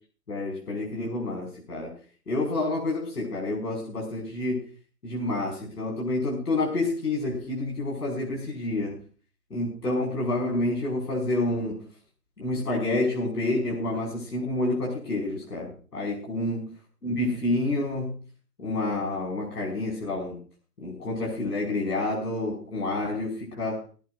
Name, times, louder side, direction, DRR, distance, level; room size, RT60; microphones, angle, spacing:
voice 1, 0.3-2.0 2.3-4.7 5.0-9.0 9.5-11.8 12.4-16.7 17.0-18.2 18.6-20.4 20.8-23.8, left 2 dB, 75° left, -3 dB, 5.5 m, -28 dB
18.5 x 16.5 x 2.5 m, 0.38 s
figure-of-eight pair, 145°, 47 cm